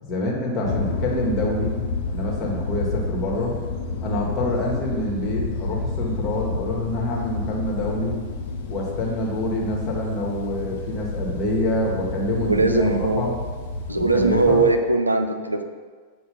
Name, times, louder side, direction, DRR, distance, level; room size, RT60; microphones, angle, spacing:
voice 1, 0.0-1.7 2.1-3.5 4.0-8.1 8.7-13.4 14.0-14.6, left 1 dB, 30° left, -2 dB, 1.4 m, -26 dB
sound 1, 0.6-14.8, left 3 dB, 50° left, 0.7 m, -30 dB
voice 2, 12.2-13.2 13.9-15.6, right 3 dB, 85° right, 6 dB, 0.4 m, -20 dB
7.0 x 2.5 x 5.5 m, 1.5 s
figure-of-eight pair, 90°, 0 cm